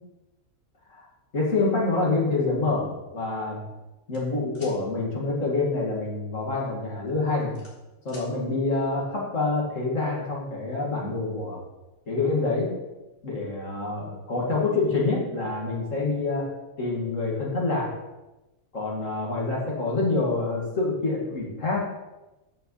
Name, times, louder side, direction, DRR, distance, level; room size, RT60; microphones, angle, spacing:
voice 1, 1.3-3.7 4.1-7.6 8.0-11.6 12.1-12.8 13.2-18.0 18.7-21.8, left 3 dB, 65° left, -3 dB, 2.5 m, -27 dB
sound 1, 4.1-4.8 6.4-6.7 7.1-8.3, left 1 dB, 40° left, 2.8 m, -48 dB
13.5 x 6.3 x 3.2 m, 1.1 s
omnidirectional pair, 1.4 m